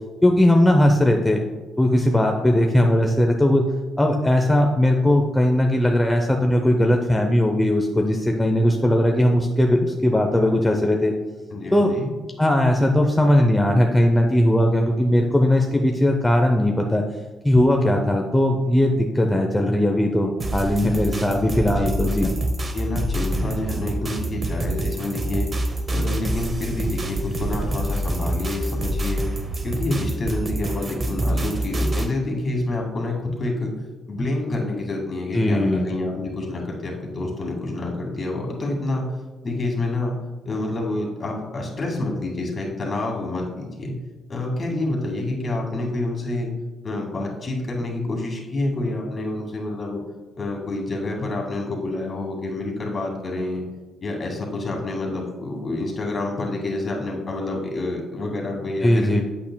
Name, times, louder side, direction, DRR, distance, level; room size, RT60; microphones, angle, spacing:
voice 1, 0.2-1.4 1.8-3.6 4.0-11.1 11.7-11.9 12.4-17.0 17.4-22.3 35.3-35.8 58.8-59.2, left 1 dB, 10° left, 2 dB, 0.6 m, -19 dB
voice 2, 11.5-12.1 21.7-21.9 22.7-25.5 25.9-29.2 29.6-33.7 34.1-39.1 39.4-40.1 40.4-43.9 44.3-46.5 46.8-50.0 50.4-53.6 54.0-59.1, left 2 dB, 40° left, 0 dB, 2.0 m, -28 dB
sound 1, 20.4-32.1, right 1 dB, 35° right, 0.8 m, -26 dB
8.4 x 8.2 x 2.2 m, 1.3 s
cardioid pair, 90°, 0 cm